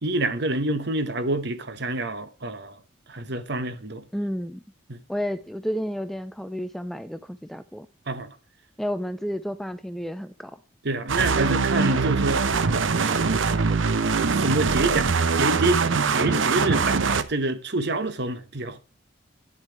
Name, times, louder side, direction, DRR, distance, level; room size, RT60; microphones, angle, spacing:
voice 1, 0.0-2.8 3.1-4.0 4.9-5.0 8.1-8.3 10.8-12.5 13.0-13.8 14.4-18.8, right 2 dB, 55° right, 1.1 m, -27 dB
voice 2, 4.1-4.6 5.1-7.9 8.8-10.6, equal, ahead, 0.4 m, -31 dB
sound 1, 11.1-17.2, right 4 dB, 75° right, 0.8 m, -22 dB
9.9 x 7.4 x 4.6 m
head